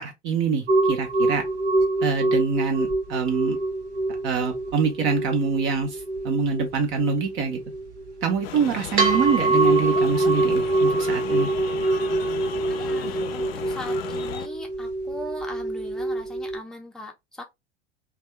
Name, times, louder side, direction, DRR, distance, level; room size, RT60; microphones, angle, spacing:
voice 1, 0.0-1.4 2.0-3.6 4.2-7.6 8.2-11.5, right 5 dB, 35° right, 0.7 m, -25 dB
sound 1, 0.7-16.6, right 2 dB, 65° right, 0.9 m, -25 dB
sound 2, 8.4-14.5, left 10 dB, 55° left, 0.5 m, -36 dB
voice 2, 12.7-17.4, left 1 dB, ahead, 0.6 m, -40 dB
2.6 x 2.3 x 3.2 m
figure-of-eight pair, 80°, 35 cm